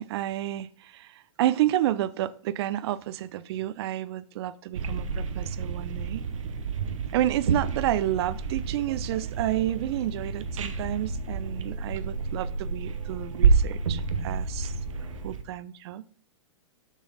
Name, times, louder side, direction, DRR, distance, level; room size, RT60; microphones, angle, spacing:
voice 1, 0.0-6.3 7.1-14.7 15.2-16.1, right 13 dB, 55° right, 0.5 m, -30 dB
sound 1, 4.7-15.4, right 5 dB, 75° right, 0.9 m, -29 dB
sound 2, 9.3-15.3, right 1 dB, 85° left, 2.5 m, -36 dB
6.8 x 6.4 x 4.0 m
hypercardioid pair, 125°, 17 cm